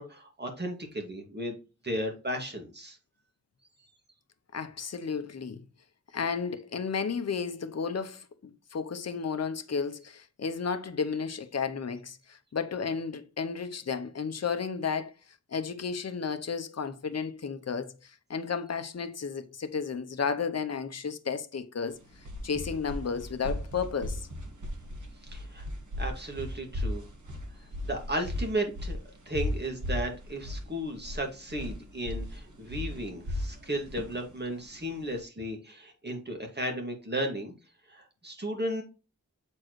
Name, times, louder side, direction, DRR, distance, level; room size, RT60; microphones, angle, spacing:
voice 1, 0.0-1.6 1.8-3.0 25.3-25.6 26.0-27.0 27.8-29.0 29.3-37.5 37.9-38.8, right 1 dB, 35° right, 2.1 m, -34 dB
voice 2, 4.5-5.6 6.1-15.1 15.5-22.0 22.4-24.3, left 5 dB, 55° left, 0.8 m, -33 dB
sound 1, 21.9-35.2, left 1 dB, 75° right, 1.7 m, -36 dB
7.5 x 4.5 x 3.1 m
wide cardioid pair, 60°, 30 cm